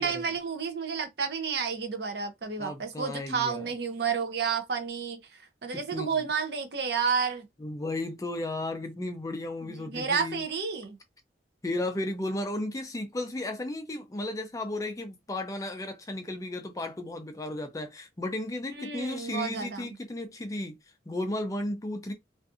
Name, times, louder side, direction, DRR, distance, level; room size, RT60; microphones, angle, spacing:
voice 1, 0.0-7.5 9.6-11.0 18.7-19.9, right 6 dB, 60° right, 0.6 m, -31 dB
voice 2, 2.6-3.7 5.7-6.1 7.6-10.4 11.6-20.8 21.1-22.1, left 1 dB, 20° left, 0.4 m, -34 dB
2.5 x 2.5 x 2.4 m
head